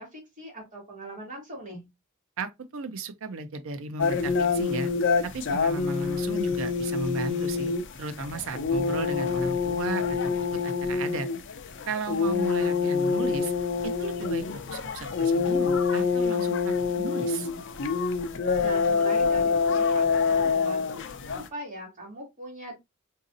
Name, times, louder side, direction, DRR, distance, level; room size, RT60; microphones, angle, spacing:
voice 1, 0.0-1.9 18.6-22.7, right 1 dB, 35° right, 2.0 m, -41 dB
voice 2, 2.4-4.9 5.2-7.7 8.0-11.3 11.9-13.5 13.8-17.5, right 4 dB, 65° right, 0.5 m, -35 dB
sound 1, 4.0-21.5, left 5 dB, 60° left, 0.5 m, -26 dB
3.9 x 2.7 x 2.5 m
head